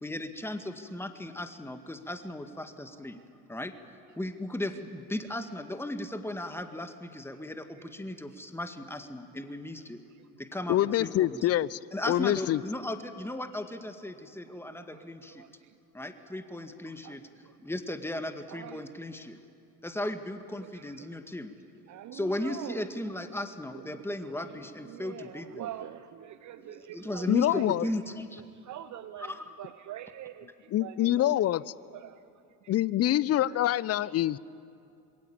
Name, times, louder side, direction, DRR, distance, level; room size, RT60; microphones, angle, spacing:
voice 1, 0.0-3.2 3.5-3.7 4.2-10.0 10.4-11.5 11.9-15.4 15.9-17.2 17.6-19.4 19.8-21.5 22.1-25.7 26.6-28.4 29.2-29.5, left 1 dB, 5° left, 8 dB, 2.0 m, -36 dB
voice 2, 10.7-11.8 12.1-12.6 27.3-27.8 30.7-31.7 32.7-34.4, left 13 dB, 35° left, 21 dB, 0.6 m, -25 dB
voice 3, 14.9-15.5 17.0-17.1 18.5-18.8 21.9-22.8 23.9-24.0 24.9-27.3 27.5-27.7 28.7-29.3 29.6-30.5 30.8-31.3 32.0-32.2 33.5-33.6, right 12 dB, 40° right, 11 dB, 1.0 m, -43 dB
26.0 x 22.5 x 8.8 m, 2.6 s
hypercardioid pair, 70°, 46 cm